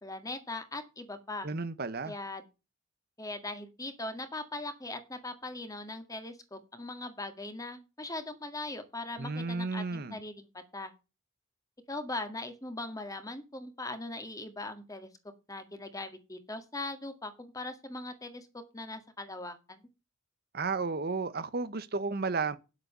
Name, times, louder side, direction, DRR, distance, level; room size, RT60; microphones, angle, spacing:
voice 1, 0.0-1.5 2.0-2.4 3.2-10.9 11.9-15.1 15.5-18.5 18.7-19.8, left 2 dB, 15° left, 1.9 m, -40 dB
voice 2, 1.4-2.1 9.2-10.2 20.5-22.6, right 4 dB, 50° right, 0.9 m, -33 dB
9.8 x 8.2 x 6.6 m
head